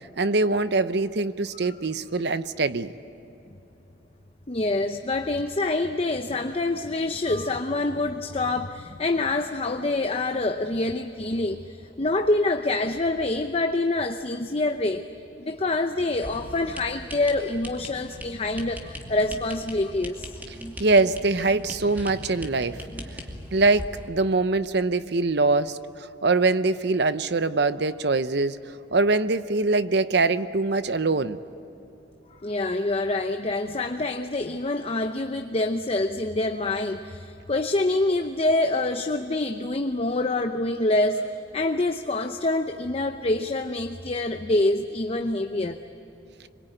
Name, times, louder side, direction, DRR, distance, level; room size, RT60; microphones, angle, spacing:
voice 1, 0.2-2.9 20.8-22.8 23.5-28.6 28.9-31.4, right 3 dB, 60° right, 13 dB, 0.8 m, -23 dB
voice 2, 4.5-11.7 12.0-15.1 15.4-20.3 32.4-41.2 41.5-45.8, left 2 dB, 30° left, 6 dB, 0.7 m, -26 dB
sound 1, 16.2-24.1, equal, 10° right, 2.4 m, -40 dB
25.5 x 23.0 x 9.1 m, 3.0 s
head